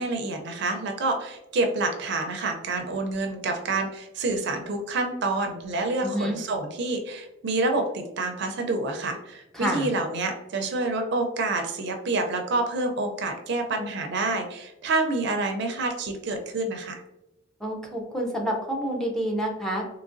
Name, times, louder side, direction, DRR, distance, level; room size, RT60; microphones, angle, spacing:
voice 1, 0.0-17.0, right 2 dB, 60° right, 4 dB, 0.5 m, -28 dB
voice 2, 6.0-6.4 9.5-9.9 17.6-19.8, equal, ahead, 0 dB, 0.5 m, -28 dB
3.8 x 2.8 x 2.5 m, 0.92 s
head